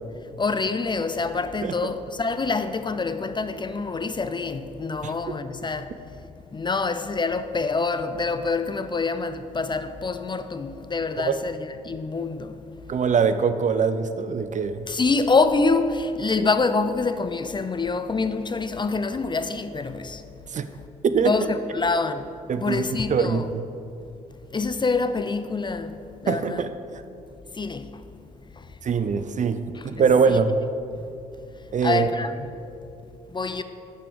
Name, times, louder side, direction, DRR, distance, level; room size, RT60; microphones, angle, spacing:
voice 1, 0.4-5.9 6.5-11.6 11.8-12.5 14.9-20.2 21.2-22.3 22.5-23.5 24.5-26.0 26.2-26.6 27.6-27.9 29.8-30.1 31.8-32.5 33.3-33.6, left 4 dB, 25° left, 0.5 m, -26 dB
voice 2, 12.9-14.9 16.4-16.5 20.5-20.7 21.0-21.3 22.5-23.6 26.3-26.7 28.8-30.6 31.7-32.1, right 6 dB, 40° right, 0.6 m, -23 dB
7.9 x 5.9 x 6.8 m
figure-of-eight pair, 45°, 20 cm